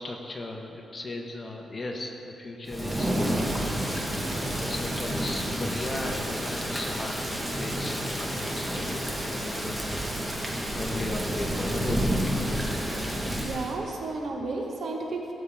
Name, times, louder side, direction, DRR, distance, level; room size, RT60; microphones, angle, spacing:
voice 1, 0.0-3.1 4.5-10.1 10.7-12.3, left 2 dB, 30° left, 1 dB, 1.2 m, -37 dB
Thunder / Rain, 2.7-13.8, equal, 10° right, 1.4 m, -30 dB
voice 2, 13.4-15.3, right 3 dB, 65° right, 0 dB, 1.5 m, -32 dB
17.0 x 7.5 x 3.6 m, 2.8 s
cardioid pair, 110°, 0 cm